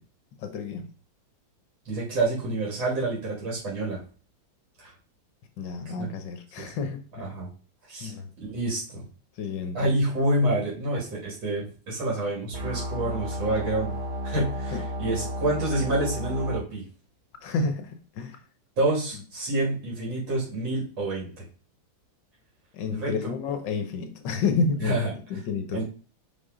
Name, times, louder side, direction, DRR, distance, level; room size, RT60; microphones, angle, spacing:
voice 1, 0.4-0.9 5.6-7.3 8.0-8.3 9.4-9.9 14.7-14.8 17.4-17.9 18.1-18.4 22.7-25.8, left 4 dB, 75° left, 1.6 m, -30 dB
voice 2, 1.8-4.0 4.8-4.9 6.0-6.1 6.6-6.7 7.2-7.5 7.9-8.1 8.4-9.1 9.7-13.9 14.2-16.8 18.8-21.3 22.9-23.3 24.8-25.1 25.7-25.8, right 1 dB, 85° right, 3.5 m, -28 dB
sound 1, 12.5-16.6, equal, 35° right, 1.6 m, -32 dB
5.9 x 5.6 x 3.8 m
omnidirectional pair, 2.0 m